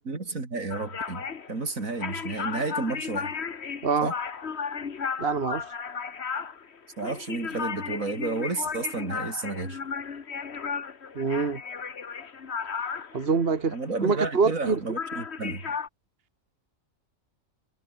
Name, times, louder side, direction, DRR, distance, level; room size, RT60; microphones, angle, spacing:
voice 1, 0.1-3.3 4.0-4.2 7.0-9.8 13.7-15.6, right 3 dB, 75° right, 3.8 m, -31 dB
sound 1, 0.7-14.7 15.0-15.9, left 6 dB, 55° left, 1.6 m, -35 dB
voice 2, 5.2-5.6 11.2-11.6 13.1-13.8 14.0-14.8, right 5 dB, 45° right, 1.8 m, -25 dB
omnidirectional pair, 1.4 m